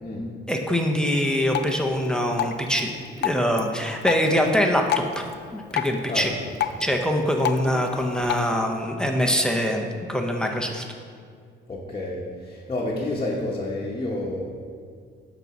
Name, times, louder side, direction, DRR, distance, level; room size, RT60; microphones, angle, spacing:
voice 1, 0.5-2.9 3.2-5.2 5.5-6.3 6.8-10.8, equal, 5° left, 2 dB, 0.8 m, -24 dB
Drip, 1.5-8.5, left 9 dB, 55° left, 0.5 m, -32 dB
voice 2, 6.1-6.5 11.7-14.4, left 2 dB, 25° left, -5 dB, 1.2 m, -29 dB
8.9 x 4.1 x 6.1 m, 2.1 s
cardioid pair, 90°, 20 cm